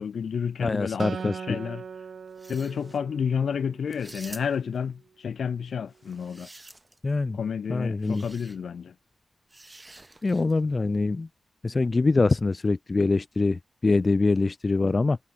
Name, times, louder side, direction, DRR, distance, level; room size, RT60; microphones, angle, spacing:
voice 1, 0.0-1.8 2.5-6.5 7.3-8.9, left 7 dB, 75° left, 1.9 m, -30 dB
voice 2, 0.6-1.6 7.0-7.4 7.7-8.2 10.2-11.3 11.6-15.2, left 3 dB, 35° left, 1.0 m, -24 dB
Acoustic guitar, 1.0-4.4, right 6 dB, 70° right, 2.4 m, -40 dB
sound 1, 2.3-3.0 3.9-4.8 5.9-7.1 8.0-8.6 9.5-10.6, right 2 dB, 20° right, 6.1 m, -48 dB
wide cardioid pair, 105°, 0 cm